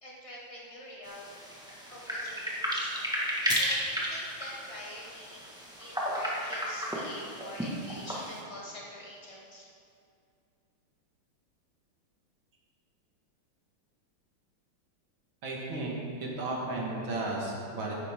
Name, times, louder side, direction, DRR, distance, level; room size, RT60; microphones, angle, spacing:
voice 1, 0.0-1.3 1.9-2.9 3.2-5.4 5.8-9.7, left 1 dB, 15° left, -5 dB, 2.2 m, -46 dB
sound 1, 1.0-8.4, equal, ahead, 1.6 m, -33 dB
voice 2, 15.4-17.9, right 2 dB, 65° right, -3 dB, 2.8 m, -34 dB
14.0 x 11.0 x 3.8 m, 2.4 s
omnidirectional pair, 2.4 m